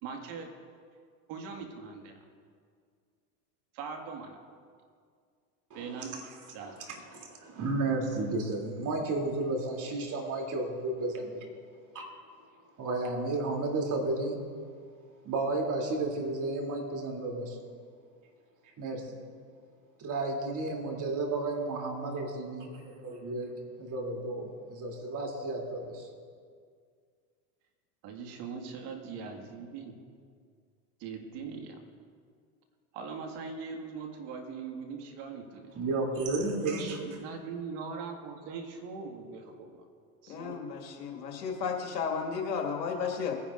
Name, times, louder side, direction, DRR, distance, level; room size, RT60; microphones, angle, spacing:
voice 1, 0.0-0.5 1.3-2.3 3.7-4.4 5.7-7.0 28.0-30.0 31.0-31.8 32.9-35.8 36.8-39.9 40.2-40.7, right 5 dB, 55° right, 4 dB, 2.0 m, -41 dB
voice 2, 5.7-6.0 7.1-11.4 11.9-12.1 12.8-14.4 15.2-17.6 18.8-19.2 20.0-23.5 23.8-26.1 35.7-37.0, right 2 dB, 40° right, 0 dB, 3.0 m, -32 dB
voice 3, 40.3-43.3, left 6 dB, 90° left, 2 dB, 2.1 m, -33 dB
21.0 x 10.0 x 2.6 m, 2.1 s
hypercardioid pair, 95°, 48 cm